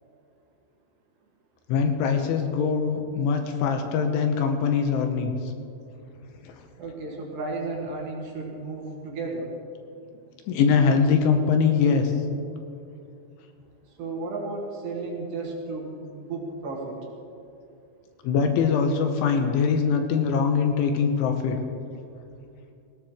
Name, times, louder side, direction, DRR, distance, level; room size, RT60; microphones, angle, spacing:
voice 1, 1.7-5.3 6.4-6.5 10.5-12.1 18.2-21.6, left 6 dB, 80° left, 5 dB, 3.3 m, -22 dB
voice 2, 6.8-9.5 14.0-17.0, right 3 dB, 65° right, -2 dB, 3.6 m, -33 dB
19.0 x 17.5 x 3.2 m, 2.6 s
omnidirectional pair, 5.8 m